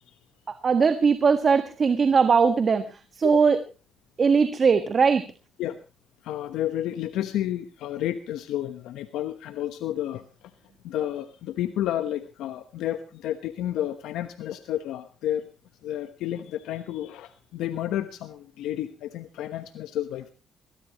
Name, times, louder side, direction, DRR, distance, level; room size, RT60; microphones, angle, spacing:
voice 1, 0.6-2.9 3.2-3.6 4.2-5.2, right 5 dB, 45° right, 10 dB, 1.5 m, -20 dB
voice 2, 6.2-10.5 10.8-15.5 15.8-20.3, left 12 dB, 90° left, 10 dB, 1.1 m, -31 dB
22.0 x 16.5 x 3.0 m, 0.31 s
cardioid pair, 90°, 0 cm